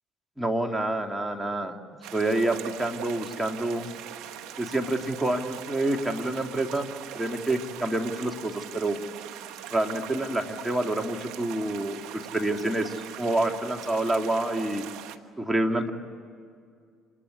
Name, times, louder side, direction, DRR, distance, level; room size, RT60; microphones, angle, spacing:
voice 1, 0.4-1.7 2.1-3.9 4.6-6.9 7.1-9.0 9.7-14.9 15.4-15.9, right 1 dB, 5° right, 3 dB, 2.5 m, -27 dB
sound 1, 2.0-15.2, right 11 dB, 75° right, 1.3 m, -41 dB
28.0 x 20.5 x 9.8 m, 2.2 s
hypercardioid pair, 60°, 0 cm